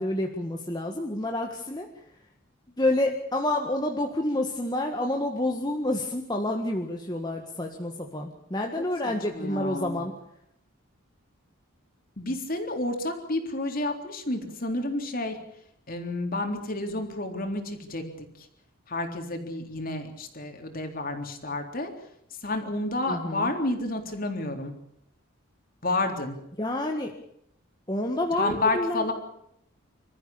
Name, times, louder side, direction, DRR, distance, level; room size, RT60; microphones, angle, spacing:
voice 1, 0.0-1.9 2.8-10.1 23.1-23.6 26.6-27.1 27.9-29.1, left 1 dB, 20° left, 2 dB, 1.8 m, -28 dB
voice 2, 9.0-10.0 12.2-15.4 15.9-18.3 18.9-21.9 22.4-24.7 25.8-26.3 28.4-29.1, left 2 dB, 45° left, 4 dB, 3.8 m, -30 dB
27.0 x 14.0 x 8.7 m, 0.74 s
head